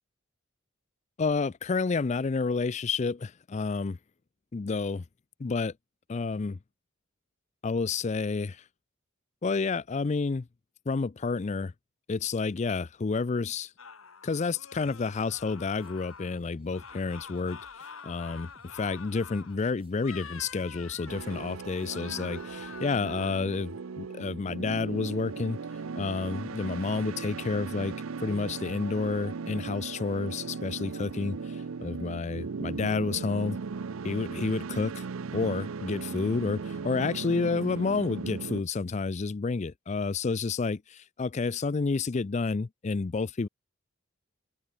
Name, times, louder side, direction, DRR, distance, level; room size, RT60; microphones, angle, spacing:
voice 1, 1.2-4.0 4.5-5.0 5.4-5.7 6.1-6.6 7.6-8.6 9.4-10.5 10.9-11.7 12.1-13.7 14.2-25.6 26.0-27.9 28.2-33.6 34.0-35.0 35.3-43.5, left 4 dB, 35° left, 0.4 m, -30 dB
sound 1, 13.8-16.4 16.7-19.6 20.0-21.6 21.9-23.4, left 6 dB, 80° left, 2.6 m, -47 dB
sound 2, 14.8-22.8, right 1 dB, 25° right, 2.2 m, -59 dB
sound 3, 21.1-38.6, right 5 dB, 85° right, 0.6 m, -37 dB
open air
head